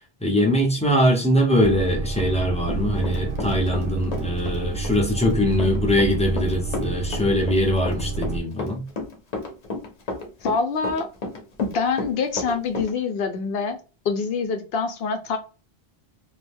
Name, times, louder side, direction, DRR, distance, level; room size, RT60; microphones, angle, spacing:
voice 1, 0.2-8.9, equal, 10° left, 0.5 m, -22 dB
sound 1, 1.6-8.4, right 4 dB, 70° right, 0.7 m, -29 dB
Run, 2.2-3.8 4.1-12.9, left 2 dB, 45° left, 0.7 m, -32 dB
voice 2, 10.4-11.1 11.6-13.8 14.0-15.4, left 5 dB, 75° left, 0.8 m, -25 dB
2.4 x 2.1 x 3.3 m
omnidirectional pair, 1.0 m